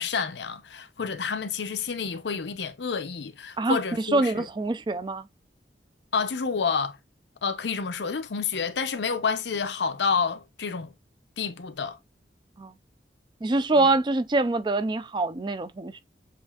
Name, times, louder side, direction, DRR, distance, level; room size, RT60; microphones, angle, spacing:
voice 1, 0.0-4.5 6.1-7.0 7.4-10.9 11.4-12.0 13.7-13.8, left 5 dB, 85° left, 0.6 m, -29 dB
voice 2, 3.6-5.3 12.6-12.7 13.4-16.0, right 2 dB, 25° right, 0.4 m, -25 dB
7.6 x 2.5 x 2.3 m
head